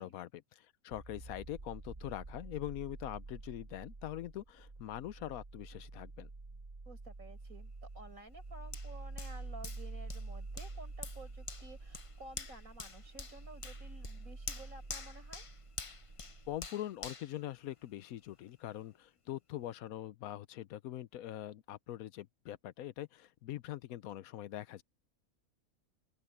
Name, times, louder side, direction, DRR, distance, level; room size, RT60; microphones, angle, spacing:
voice 1, 0.0-6.3 16.5-24.8, left 13 dB, 85° left, 1.1 m, -43 dB
sound 1, 0.9-16.6, right 3 dB, 35° right, 1.5 m, -48 dB
voice 2, 6.9-15.4, right 2 dB, 75° right, 5.9 m, -53 dB
Hands, 8.7-18.2 18.7-18.8, left 4 dB, 30° left, 0.7 m, -48 dB
open air
omnidirectional pair, 1.5 m